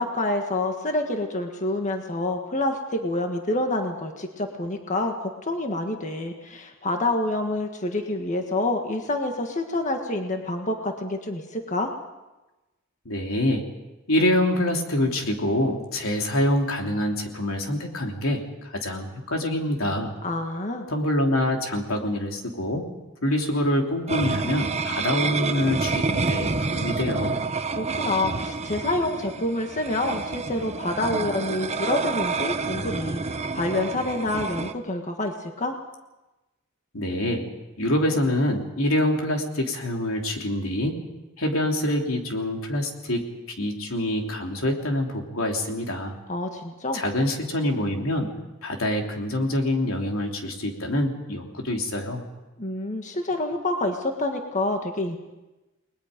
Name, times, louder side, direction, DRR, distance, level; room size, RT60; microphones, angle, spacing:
voice 1, 0.0-11.9 20.2-20.9 27.7-35.7 46.3-47.0 52.6-55.2, left 2 dB, 35° left, 4 dB, 1.6 m, -27 dB
voice 2, 13.0-13.6 14.1-18.4 18.7-20.1 20.9-22.8 23.2-27.4 36.9-37.5 37.8-40.9 41.4-43.2 43.6-46.1 46.9-48.3 48.6-52.2, left 1 dB, 80° left, 2 dB, 3.2 m, -25 dB
sound 1, 24.1-34.7, right 4 dB, 30° right, 0.9 m, -28 dB
30.0 x 20.5 x 5.2 m, 1.1 s
head